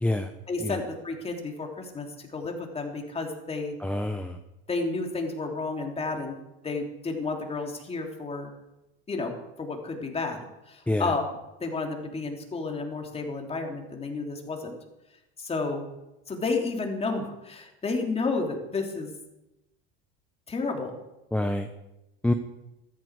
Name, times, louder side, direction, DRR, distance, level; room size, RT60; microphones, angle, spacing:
voice 1, 0.5-3.7 4.7-6.4 6.6-8.5 9.1-10.4 10.7-11.2 11.6-14.8 15.4-15.9 16.3-19.1 20.5-20.9, left 3 dB, 20° left, 2 dB, 3.3 m, -31 dB
voice 2, 3.8-4.4 10.9-11.1 21.3-21.7 22.2-22.3, left 1 dB, 5° left, 6 dB, 0.8 m, -26 dB
14.5 x 14.0 x 4.8 m, 0.94 s
supercardioid pair, 105°, 29 cm